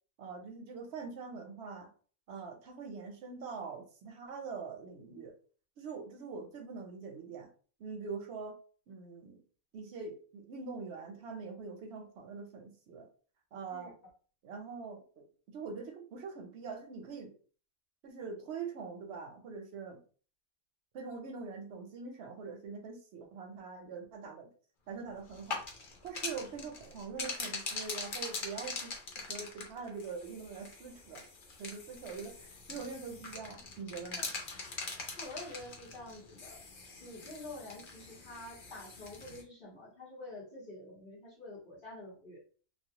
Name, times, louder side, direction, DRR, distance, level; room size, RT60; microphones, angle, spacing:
voice 1, 0.2-1.9 2.3-5.3 5.8-7.5 7.8-8.6 8.9-9.4 9.7-13.1 13.5-13.9 14.4-17.3 18.0-20.0 20.9-24.5 24.9-25.6 26.0-31.2 31.6-34.3, right 5 dB, 65° right, 3 dB, 0.7 m, -43 dB
Graffiti - Dose schütteln und sprayen, 25.3-39.4, left 4 dB, 60° left, 0.6 m, -43 dB
voice 2, 35.2-36.6 37.0-42.4, left 2 dB, 45° left, -6 dB, 0.9 m, -47 dB
2.4 x 2.0 x 2.7 m, 0.40 s
omnidirectional pair, 1.5 m